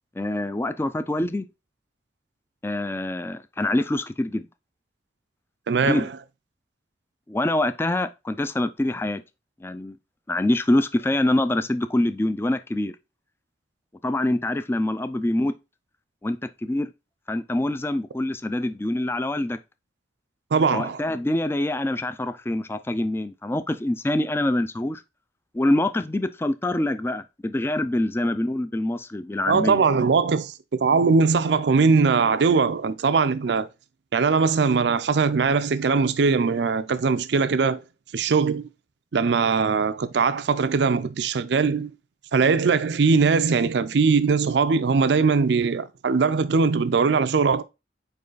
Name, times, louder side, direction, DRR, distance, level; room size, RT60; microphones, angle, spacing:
voice 1, 0.2-1.5 2.6-4.5 5.9-6.1 7.3-9.2 9.6-10.0 10.3-13.0 14.0-15.5 16.2-16.9 17.3-19.6 20.7-25.0 25.5-30.1, left 1 dB, 15° left, 0.3 m, -25 dB
voice 2, 5.7-6.1 20.5-21.0 29.5-33.7 34.1-37.8 38.1-38.7 39.1-41.9 42.3-47.6, right 5 dB, 75° right, 0.4 m, -21 dB
5.4 x 4.7 x 3.9 m
head